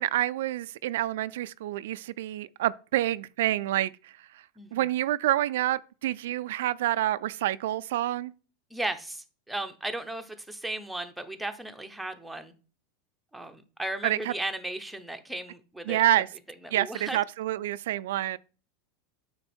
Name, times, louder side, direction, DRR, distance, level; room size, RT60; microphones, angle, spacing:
voice 1, 0.0-4.4 4.7-8.3 14.0-14.3 15.9-16.3 16.7-18.4, right 14 dB, 75° right, 0.3 m, -28 dB
voice 2, 4.6-4.9 8.7-12.5 13.3-16.2 16.6-17.2, right 1 dB, ahead, 0.7 m, -36 dB
8.9 x 3.8 x 4.3 m
supercardioid pair, 150°, 0 cm